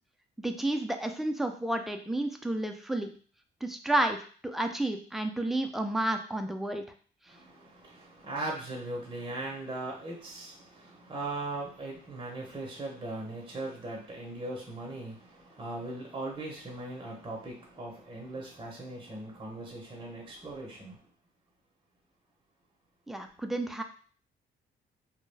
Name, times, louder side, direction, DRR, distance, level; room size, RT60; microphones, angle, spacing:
voice 1, 0.4-3.1 3.6-6.9 23.1-23.8, right 1 dB, ahead, 5 dB, 0.3 m, -31 dB
voice 2, 7.3-21.0, right 2 dB, 25° right, -1 dB, 0.7 m, -39 dB
2.2 x 2.0 x 3.2 m, 0.43 s
cardioid pair, 90°, 20 cm